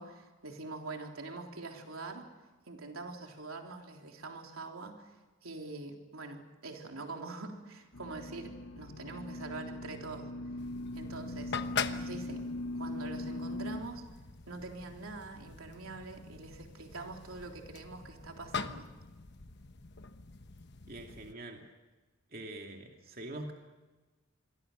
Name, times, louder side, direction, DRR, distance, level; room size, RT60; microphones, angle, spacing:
voice 1, 0.0-2.3 2.7-5.1 5.4-10.3 11.0-11.6 11.9-14.0 14.5-18.9, right 3 dB, 80° right, 2 dB, 3.6 m, -44 dB
sound 1, 7.9-13.8, left 1 dB, 80° left, 1.1 m, -40 dB
sound 2, 10.6-21.3, left 6 dB, 50° left, 1.1 m, -43 dB
voice 2, 20.9-21.6 22.3-23.5, right 1 dB, 45° right, 2 dB, 2.6 m, -44 dB
27.5 x 22.5 x 6.8 m, 1.2 s
head